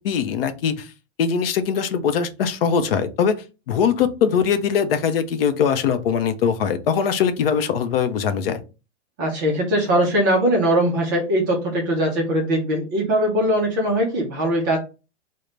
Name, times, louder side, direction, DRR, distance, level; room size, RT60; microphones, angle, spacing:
voice 1, 0.0-0.9 1.2-3.4 3.7-8.6, left 7 dB, 55° left, 10 dB, 0.5 m, -21 dB
voice 2, 9.2-14.8, right 1 dB, 20° right, 0 dB, 0.4 m, -21 dB
3.2 x 2.1 x 3.7 m, 0.31 s
supercardioid pair, 165°, 35 cm